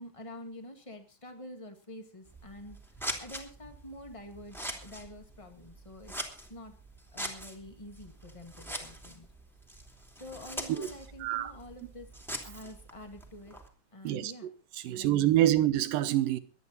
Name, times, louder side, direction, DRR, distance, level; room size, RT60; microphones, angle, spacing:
voice 1, 0.0-2.8 3.2-6.8 7.1-9.3 10.2-12.1 12.4-13.6 13.9-14.5 14.9-15.1 15.4-15.5, left 1 dB, 15° left, 1.0 m, -47 dB
Scissors, 2.2-13.7, equal, ahead, 2.0 m, -43 dB
voice 2, 11.2-11.5 14.0-14.3 14.7-16.4, right 13 dB, 75° right, 2.6 m, -26 dB
23.5 x 9.8 x 4.1 m
omnidirectional pair, 4.2 m